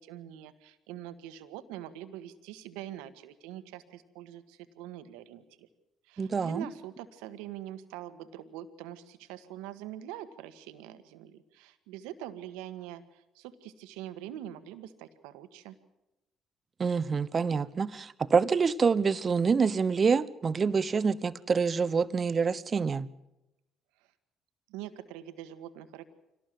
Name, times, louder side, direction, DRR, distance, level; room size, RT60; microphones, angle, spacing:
voice 1, 0.0-5.7 6.1-15.7 24.7-26.0, right 12 dB, 80° right, 1.6 m, -44 dB
voice 2, 6.2-6.7 16.8-23.1, right 5 dB, 40° right, 1.0 m, -26 dB
25.5 x 18.0 x 7.8 m
hypercardioid pair, 55°, 0 cm